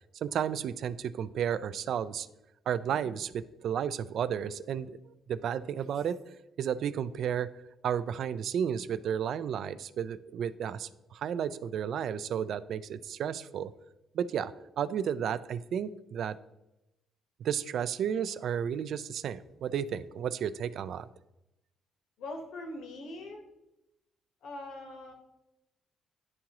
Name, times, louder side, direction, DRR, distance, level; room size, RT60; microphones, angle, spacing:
voice 1, 0.1-2.3 2.7-6.2 6.6-7.5 7.8-13.7 14.1-16.4 17.4-21.1, right 8 dB, 60° right, 14 dB, 0.3 m, -33 dB
voice 2, 22.2-23.4 24.4-25.1, left 2 dB, 75° left, 3 dB, 1.3 m, -42 dB
10.5 x 3.7 x 3.0 m, 0.92 s
cardioid pair, 125°, 0 cm